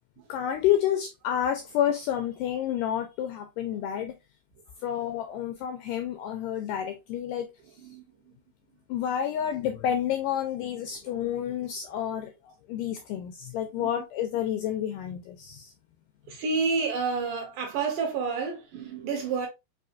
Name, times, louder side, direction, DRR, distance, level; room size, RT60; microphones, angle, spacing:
voice 1, 0.3-4.1 4.8-7.5 8.9-15.7, left 10 dB, 85° left, 1.9 m, -29 dB
voice 2, 16.3-19.5, right 4 dB, 70° right, 2.3 m, -29 dB
5.6 x 2.8 x 2.5 m
omnidirectional pair, 4.3 m